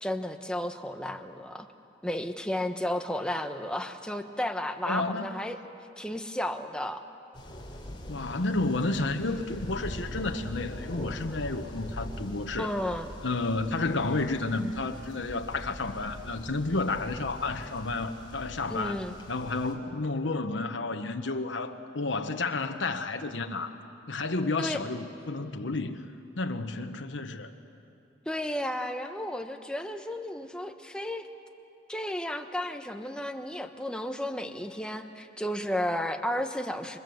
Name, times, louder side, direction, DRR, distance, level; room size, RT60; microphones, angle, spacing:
voice 1, 0.0-1.7 2.0-5.6 6.0-7.0 12.6-13.1 18.7-19.2 24.6-24.8 28.3-31.3 31.9-37.0, left 1 dB, 5° left, 5 dB, 1.1 m, -33 dB
voice 2, 4.9-5.4 8.1-12.7 13.2-19.0 19.3-23.8 24.1-26.0 26.4-27.5, left 3 dB, 80° left, 5 dB, 1.2 m, -31 dB
sound 1, 7.3-19.7, equal, 25° left, 3.3 m, -42 dB
28.0 x 24.5 x 7.9 m, 2.7 s
head